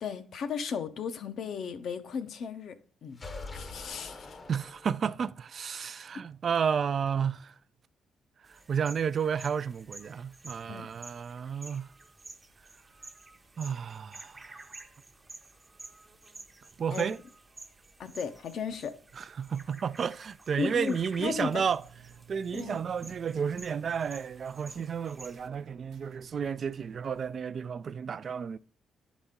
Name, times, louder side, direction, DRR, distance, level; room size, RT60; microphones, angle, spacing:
voice 1, 0.0-2.7 3.0-3.2 3.5-4.4 10.7-10.9 16.9-17.1 18.0-19.0 20.6-21.6 22.5-22.8, left 6 dB, 65° left, 0.7 m, -35 dB
sound 1, 3.1-5.2, left 3 dB, 35° left, 0.8 m, -44 dB
voice 2, 4.5-7.5 8.7-11.9 13.6-14.4 16.8-17.2 19.2-21.8 22.3-28.6, right 7 dB, 50° right, 0.3 m, -32 dB
sound 2, 8.5-25.5, right 2 dB, 20° right, 0.7 m, -51 dB
sound 3, 21.0-27.4, right 8 dB, 80° right, 0.7 m, -55 dB
10.5 x 4.1 x 3.6 m
cardioid pair, 90°, 0 cm